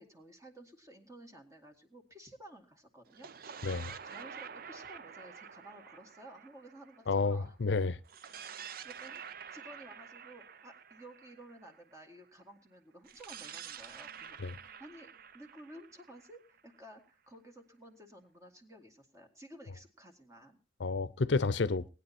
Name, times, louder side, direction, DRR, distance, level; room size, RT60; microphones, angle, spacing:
voice 1, 0.0-7.6 8.6-9.2 9.5-14.4 14.8-20.6, right 1 dB, 15° right, 2.1 m, -54 dB
sound 1, 3.1-7.5 8.1-12.0 13.0-16.9, right 7 dB, 55° right, 0.6 m, -48 dB
voice 2, 3.6-3.9 7.1-8.0 14.4-14.6 20.8-21.9, left 4 dB, 75° left, 0.6 m, -30 dB
19.0 x 9.8 x 4.3 m
head